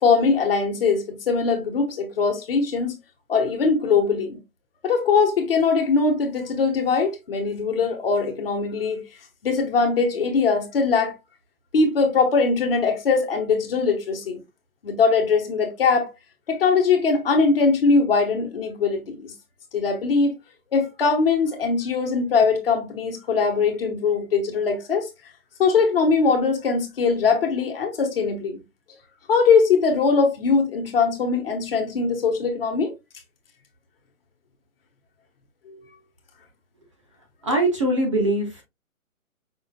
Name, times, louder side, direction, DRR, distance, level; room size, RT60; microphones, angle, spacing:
voice 1, 0.0-3.0 3.3-4.4 4.8-9.0 9.4-11.1 11.7-14.4 14.8-16.1 16.5-19.3 19.7-20.3 20.7-25.1 25.6-28.6 29.3-32.9 35.7-35.8, left 4 dB, 40° left, 1.5 m, -21 dB
voice 2, 37.4-38.6, right 1 dB, 20° right, 0.7 m, -22 dB
5.6 x 3.6 x 2.3 m
hypercardioid pair, 165°, 42 cm